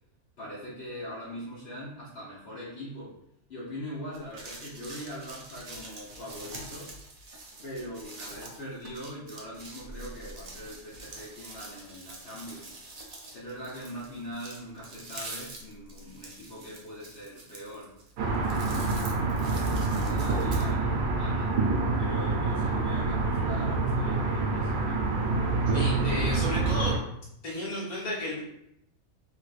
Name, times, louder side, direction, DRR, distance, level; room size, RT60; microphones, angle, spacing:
voice 1, 0.4-3.1 3.5-6.9 7.6-12.8 13.3-17.9 18.4-21.5 22.0-25.0, equal, 55° left, -8 dB, 1.0 m, -42 dB
sound 1, 4.1-20.7, right 2 dB, 50° right, 0.4 m, -45 dB
sound 2, 18.2-27.0, right 3 dB, 80° right, 1.1 m, -27 dB
voice 2, 25.7-26.9 27.4-28.4, left 1 dB, 35° left, -6 dB, 1.1 m, -33 dB
3.4 x 3.1 x 2.4 m, 0.75 s
omnidirectional pair, 1.5 m